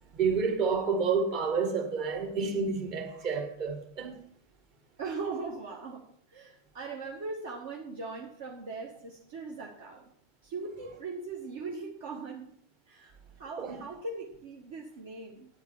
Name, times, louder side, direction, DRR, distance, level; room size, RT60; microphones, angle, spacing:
voice 1, 0.1-4.2 13.6-13.8, right 5 dB, 40° right, 1.9 m, -29 dB
voice 2, 5.0-6.0 6.3-10.0 10.4-12.5 12.9-15.5, right 4 dB, 55° right, 1.4 m, -39 dB
9.0 x 4.7 x 7.4 m
figure-of-eight pair, 90°, 0 cm